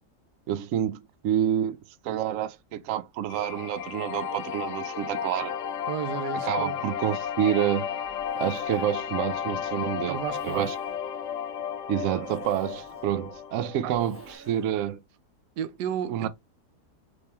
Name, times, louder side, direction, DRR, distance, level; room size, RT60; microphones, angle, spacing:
voice 1, 0.5-1.8 2.0-5.5 6.5-7.9 8.4-10.7 11.9-15.0 16.1-16.3, right 11 dB, 70° right, 0.8 m, -28 dB
sound 1, 3.3-14.4, left 8 dB, 70° left, 0.7 m, -33 dB
voice 2, 5.9-6.8 10.1-10.7 13.8-13.9 15.6-16.3, right 9 dB, 90° right, 1.2 m, -32 dB
Zipper (clothing), 7.1-14.9, right 2 dB, 10° right, 1.5 m, -54 dB
3.3 x 3.3 x 2.7 m
omnidirectional pair, 1.7 m